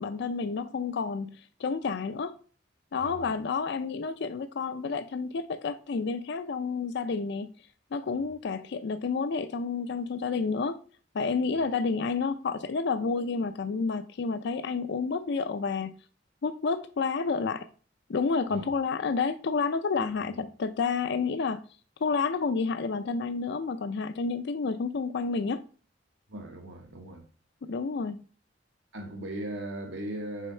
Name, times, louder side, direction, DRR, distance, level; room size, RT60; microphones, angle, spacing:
voice 1, 0.0-2.4 2.9-7.5 7.9-10.8 11.1-15.9 16.4-17.7 18.1-21.6 22.0-25.6 27.7-28.2, left 4 dB, 60° left, 0.4 m, -30 dB
voice 2, 3.0-3.3 18.5-18.6 26.3-27.3 28.9-30.5, right 1 dB, 70° right, 1.2 m, -38 dB
6.4 x 4.6 x 4.3 m
head